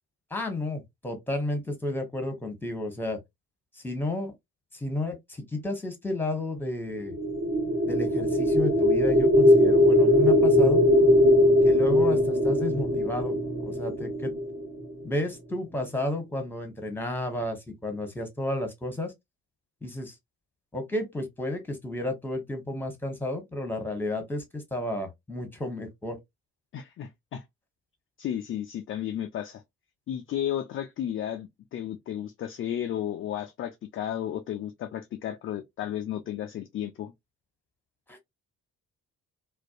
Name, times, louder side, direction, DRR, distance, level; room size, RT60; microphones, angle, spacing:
voice 1, 0.3-3.2 3.8-4.3 4.7-7.1 7.9-10.8 11.6-13.4 13.6-14.3 15.0-19.1 19.8-20.1 20.7-26.2 38.1-38.2, left 1 dB, 5° left, 1.0 m, -32 dB
sound 1, 7.0-15.1, left 1 dB, 35° right, 1.3 m, -21 dB
voice 2, 26.7-27.4 28.2-29.6 30.1-37.1, left 10 dB, 30° left, 0.4 m, -33 dB
2.5 x 2.2 x 2.4 m
figure-of-eight pair, 45°, 44 cm